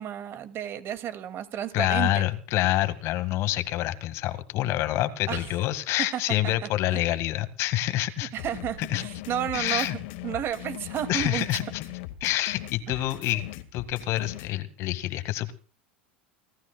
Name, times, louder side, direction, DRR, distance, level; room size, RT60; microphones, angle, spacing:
voice 1, 0.0-2.2 5.3-5.4 6.1-7.0 8.3-11.5 12.9-13.1, right 10 dB, 45° right, 10 dB, 2.4 m, -32 dB
voice 2, 1.7-8.3 8.8-9.0 9.5-10.0 11.1-11.8 12.2-13.5 13.7-15.5, left 15 dB, 55° left, 12 dB, 1.9 m, -27 dB
sound 1, 8.4-14.5, left 16 dB, 70° left, 1.9 m, -39 dB
29.5 x 13.5 x 2.3 m, 0.37 s
hypercardioid pair, 95°, 6 cm